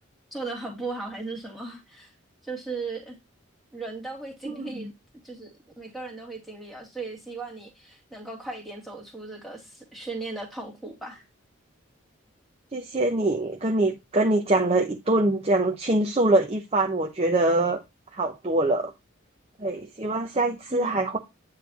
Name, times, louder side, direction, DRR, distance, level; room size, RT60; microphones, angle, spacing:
voice 1, 0.3-2.1 2.4-3.2 3.7-4.9 5.2-11.2 20.7-21.0, right 3 dB, ahead, 2.0 m, -37 dB
voice 2, 12.7-17.8 18.1-18.9 19.6-21.2, right 2 dB, 30° right, 0.7 m, -24 dB
9.2 x 3.3 x 4.0 m
head